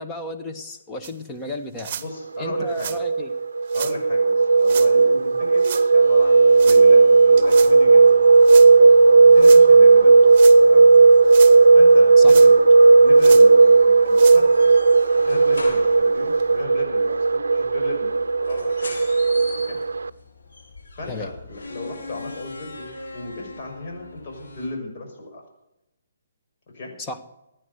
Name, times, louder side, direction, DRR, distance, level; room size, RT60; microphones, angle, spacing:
voice 1, 0.0-1.9 2.4-3.3 12.2-12.3 21.1-21.3 27.0-27.2, left 2 dB, 15° left, 4 dB, 1.5 m, -33 dB
sound 1, 1.0-1.1 1.8-2.1 2.7-3.0 3.7-3.9 4.6-4.9 5.6-5.9 6.6-6.8 7.4-7.7 8.4-8.7 9.4-9.6 10.2-10.6 11.1-11.6 12.2-12.7 13.2-13.5 14.1-14.4 15.0-15.1 15.5-15.6 16.4-16.5, right 9 dB, 40° right, 1.1 m, -33 dB
voice 2, 2.0-2.9 3.7-8.1 9.2-10.1 10.7-10.9 11.7-12.6 13.0-14.8 15.1-19.0 19.7-19.8 21.0-25.4 26.7-26.9, left 2 dB, 45° left, 0 dB, 5.9 m, -36 dB
sound 2, 2.4-20.1, right 4 dB, 85° right, 0.5 m, -14 dB
sound 3, 6.0-24.7, left 2 dB, 75° left, 5.9 m, -42 dB
15.5 x 9.7 x 8.2 m, 0.88 s
hypercardioid pair, 145°, 0 cm